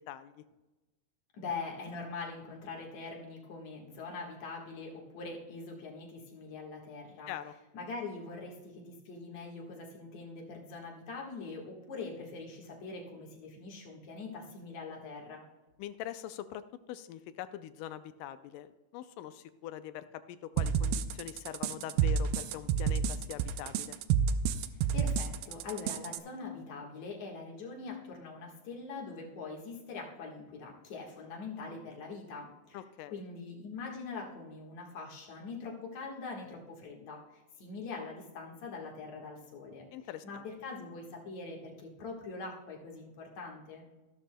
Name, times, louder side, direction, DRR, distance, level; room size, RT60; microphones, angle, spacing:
voice 1, 0.1-0.4 7.3-7.5 15.8-16.6 16.9-24.0 32.7-33.2 39.9-40.4, left 12 dB, 80° left, 12 dB, 2.0 m, -43 dB
voice 2, 1.3-7.3 7.7-15.5 24.7-32.8 33.1-39.9 40.2-43.8, left 4 dB, 60° left, -1 dB, 2.7 m, -43 dB
sound 1, 20.6-26.2, right 7 dB, 90° right, 2.3 m, -29 dB
14.0 x 12.5 x 2.2 m, 1.1 s
omnidirectional pair, 3.9 m